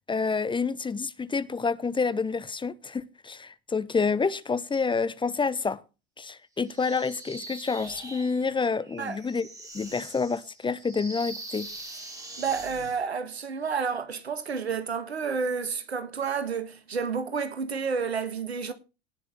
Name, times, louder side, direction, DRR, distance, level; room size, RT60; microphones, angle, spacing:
voice 1, 0.1-5.8 6.2-9.5 9.7-11.7, left 4 dB, 15° left, 0.9 m, -28 dB
sound 1, 6.7-13.0, right 2 dB, 10° right, 3.4 m, -43 dB
voice 2, 12.4-18.7, right 5 dB, 85° right, 1.7 m, -30 dB
18.5 x 6.4 x 4.4 m
figure-of-eight pair, 80°, 31 cm